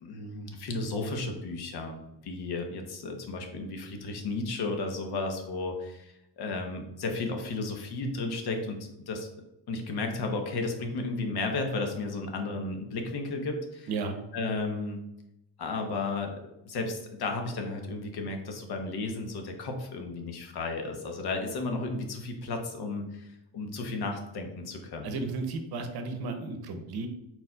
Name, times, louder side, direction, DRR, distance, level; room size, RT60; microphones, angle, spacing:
voice 1, 0.0-9.3 9.7-13.9 14.3-15.1 15.6-16.3 16.6-25.2, left 3 dB, 60° left, 4 dB, 0.9 m, -33 dB
voice 2, 13.9-14.2 25.0-27.1, right 3 dB, 60° right, 6 dB, 0.8 m, -33 dB
4.3 x 4.0 x 2.2 m, 0.85 s
cardioid pair, 90°, 44 cm